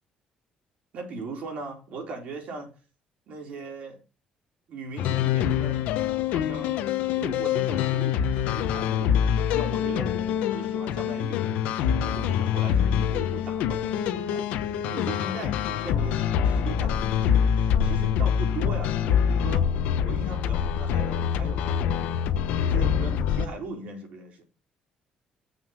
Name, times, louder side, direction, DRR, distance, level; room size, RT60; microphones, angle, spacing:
voice 1, 0.9-2.7 3.3-4.0 4.7-6.0 6.3-19.6 20.0-22.1 22.6-24.4, right 3 dB, 70° right, 4.2 m, -39 dB
sound 1, 5.0-23.5, left 8 dB, 85° left, 0.9 m, -25 dB
7.1 x 6.1 x 6.0 m
cardioid pair, 90°, 2 cm